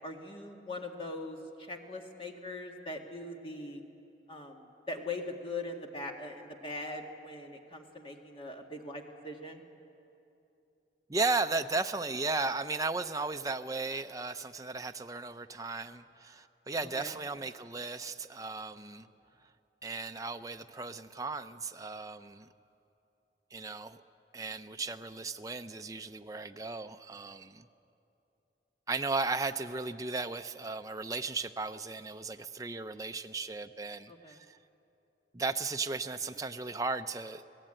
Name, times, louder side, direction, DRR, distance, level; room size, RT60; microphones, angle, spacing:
voice 1, 0.0-3.8 4.3-9.6 16.8-17.1 34.1-34.4, left 2 dB, 30° left, 2 dB, 1.9 m, -41 dB
voice 2, 11.1-19.1 19.8-22.5 23.5-24.0 24.3-27.6 28.9-34.6 35.3-37.4, right 3 dB, 20° right, 7 dB, 0.6 m, -35 dB
26.0 x 17.5 x 9.0 m, 2.8 s
head